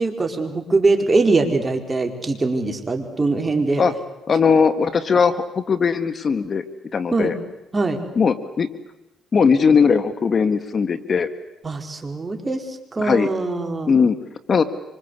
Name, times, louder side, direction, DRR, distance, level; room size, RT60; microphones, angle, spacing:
voice 1, 0.0-3.8 7.1-7.3 7.7-8.0 11.6-13.9, right 3 dB, 25° right, 4 dB, 4.6 m, -22 dB
voice 2, 4.3-6.6 6.9-7.3 8.1-8.7 9.3-11.3 13.0-13.3 13.9-14.2 14.5-14.6, left 5 dB, 45° left, 11 dB, 1.8 m, -18 dB
26.5 x 25.5 x 8.3 m, 0.92 s
cardioid pair, 90°, 0 cm